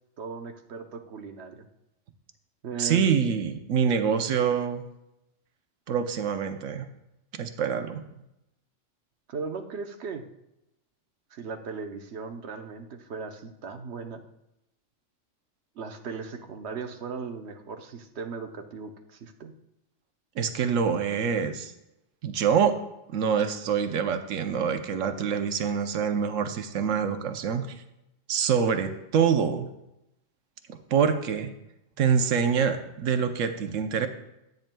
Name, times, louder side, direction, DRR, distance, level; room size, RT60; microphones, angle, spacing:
voice 1, 0.2-1.7 2.6-3.1 9.3-10.3 11.3-14.2 15.8-19.5, right 5 dB, 60° right, 6 dB, 1.0 m, -37 dB
voice 2, 2.8-4.8 5.9-6.9 7.4-8.0 20.4-21.7 22.2-22.8 23.1-27.8 28.3-29.7 30.7-31.5 32.0-34.1, right 7 dB, 85° right, 8 dB, 1.1 m, -25 dB
13.5 x 8.8 x 2.3 m, 0.87 s
omnidirectional pair, 1.3 m